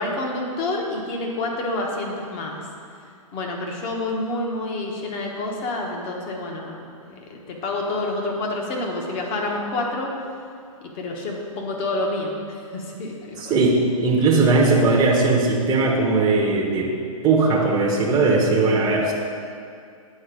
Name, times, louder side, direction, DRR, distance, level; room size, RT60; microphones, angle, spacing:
voice 1, 0.0-2.6 3.3-10.1 10.8-13.6, left 2 dB, 35° left, 0 dB, 1.2 m, -28 dB
voice 2, 13.4-16.9 17.2-19.1, right 3 dB, 20° right, -2 dB, 0.9 m, -19 dB
8.7 x 3.9 x 5.2 m, 2.4 s
hypercardioid pair, 125°, 18 cm